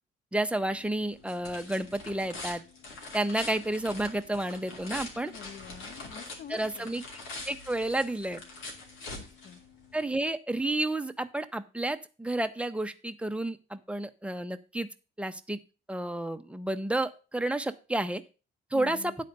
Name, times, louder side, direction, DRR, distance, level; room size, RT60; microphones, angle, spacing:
voice 1, 0.3-2.6 3.1-5.3 6.5-7.0 7.5-8.4 9.9-14.9 15.2-15.6 15.9-18.2 18.7-19.0, right 1 dB, 5° right, 8 dB, 0.9 m, -31 dB
sound 1, 0.6-10.0, left 3 dB, 90° left, 2.6 m, -44 dB
voice 2, 5.2-7.0 9.0-9.6 18.7-19.1, left 8 dB, 55° left, 14 dB, 0.9 m, -47 dB
10.5 x 4.2 x 6.7 m, 0.33 s
cardioid pair, 90°, 20 cm